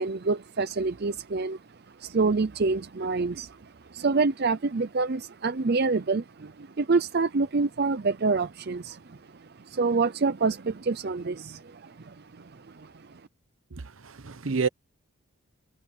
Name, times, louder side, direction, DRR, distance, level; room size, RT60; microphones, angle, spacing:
voice 1, 0.0-1.6 2.0-3.6 3.9-13.1, right 4 dB, 45° right, 0.5 m, -27 dB
voice 2, 13.7-14.7, right 5 dB, 65° right, 0.9 m, -29 dB
head